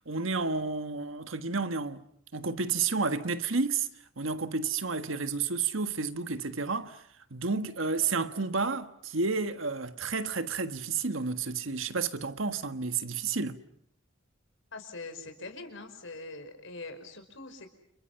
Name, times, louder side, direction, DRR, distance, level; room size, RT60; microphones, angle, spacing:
voice 1, 0.0-2.0 2.3-3.9 4.2-7.0 7.3-13.6, right 4 dB, 85° right, 1.5 m, -31 dB
voice 2, 14.7-17.7, left 3 dB, 75° left, 5.0 m, -43 dB
30.0 x 29.0 x 5.8 m
head